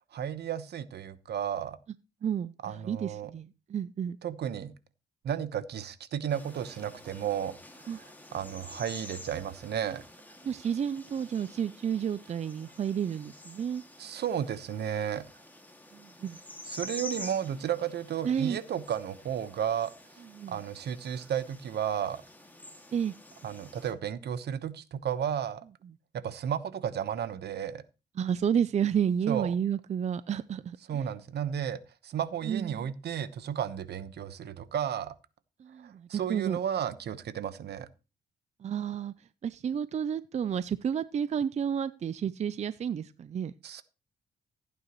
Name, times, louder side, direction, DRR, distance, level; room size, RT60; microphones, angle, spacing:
voice 1, 0.1-1.8 2.6-3.3 4.2-4.7 5.2-10.0 14.0-15.2 16.7-19.9 20.5-22.2 23.4-25.6 26.1-27.8 29.3-29.5 30.9-35.1 35.8-37.9 43.6-43.8, right 9 dB, 65° right, 1.1 m, -33 dB
voice 2, 2.2-4.2 7.9-8.0 10.4-13.8 15.9-16.4 18.2-18.6 20.3-20.6 22.9-23.1 28.2-31.0 32.4-32.9 35.6-36.6 38.6-43.5, right 8 dB, 40° right, 0.4 m, -31 dB
sound 1, 6.3-23.9, left 1 dB, 10° left, 2.2 m, -48 dB
15.5 x 9.2 x 3.1 m
cardioid pair, 115°, 18 cm